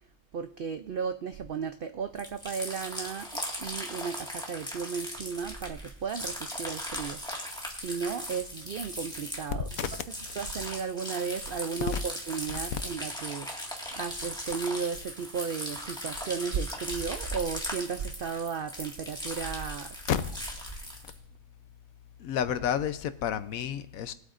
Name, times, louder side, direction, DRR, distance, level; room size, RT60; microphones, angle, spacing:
voice 1, 0.3-7.2 7.8-9.7 10.4-20.0, right 6 dB, 75° right, 8 dB, 0.5 m, -35 dB
sound 1, 2.2-21.2, equal, 5° left, 1.7 m, -38 dB
voice 2, 22.2-24.1, left 9 dB, 70° left, 12 dB, 1.1 m, -30 dB
20.5 x 8.1 x 2.5 m, 0.70 s
omnidirectional pair, 1.5 m